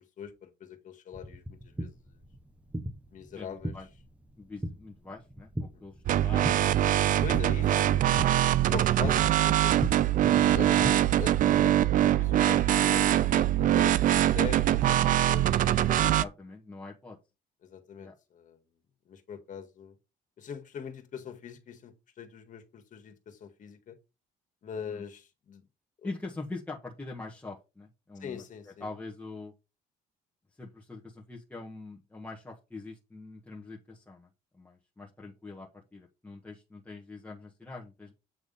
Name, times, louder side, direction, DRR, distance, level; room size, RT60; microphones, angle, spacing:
voice 1, 0.0-2.2 3.1-3.7 5.7-5.8 7.2-8.3 8.7-9.8 10.4-16.0 17.6-18.6 19.1-19.9 20.4-24.0 24.6-25.7 28.2-28.9, left 7 dB, 50° left, 1.9 m, -43 dB
sound 1, 1.1-10.9, equal, 10° right, 1.1 m, -39 dB
voice 2, 3.3-3.9 4.4-7.0 7.6-7.7 8.1-8.5 10.7-11.0 16.0-17.2 18.0-18.1 24.9-25.0 26.0-28.4 28.8-29.5 30.6-34.3 34.5-38.1, left 3 dB, 10° left, 1.5 m, -43 dB
sound 2, 6.0-16.2, right 12 dB, 55° right, 0.5 m, -23 dB
8.5 x 3.5 x 5.4 m
cardioid pair, 110°, 17 cm